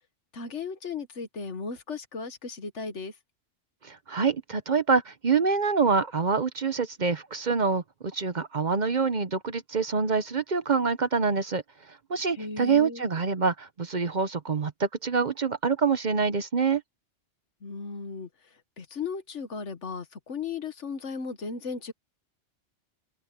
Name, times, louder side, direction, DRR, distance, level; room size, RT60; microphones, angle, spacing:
voice 1, 0.3-3.1 12.3-13.0 17.6-18.3 18.8-21.9, left 5 dB, 80° left, 1.7 m, -36 dB
voice 2, 3.8-7.8 8.1-11.6 12.1-16.8, right 5 dB, 45° right, 0.9 m, -26 dB
omnidirectional pair, 1.2 m